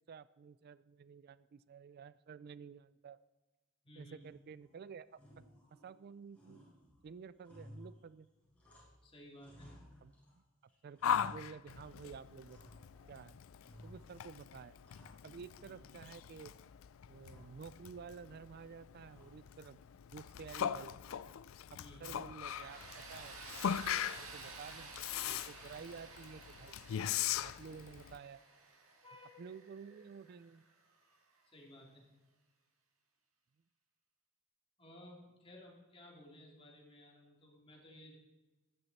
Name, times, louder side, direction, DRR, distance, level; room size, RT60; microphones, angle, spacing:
voice 1, 0.1-3.2 4.0-5.1 5.4-5.5 5.8-6.6 7.0-8.3 10.0-10.4 10.8-12.7 13.1-13.4 13.8-14.8 15.2-16.5 17.1-19.8 20.1-21.0 21.7-22.8 23.1-23.8 24.2-26.8 27.4-28.4 29.4-30.6, right 6 dB, 50° right, 17 dB, 0.3 m, -51 dB
voice 2, 3.8-4.3 9.0-9.7 15.7-15.8 21.7-22.2 29.0-29.4 29.9-30.0 31.4-32.0 34.8-38.2, left 1 dB, 25° left, -2 dB, 2.9 m, -56 dB
sound 1, 4.2-4.8 5.1-6.1 6.3-9.1 9.4-10.4 10.7-12.1 12.5-13.2 13.6-14.3 14.6-15.7 16.0-16.7 17.2-17.7 19.1-19.6, equal, 5° left, 5.1 m, -58 dB
Yell, 11.0-28.2, left 9 dB, 75° left, 0.4 m, -40 dB
Tools, 22.5-31.2, right 4 dB, 80° right, 2.0 m, -53 dB
15.0 x 11.0 x 4.2 m, 1.2 s
head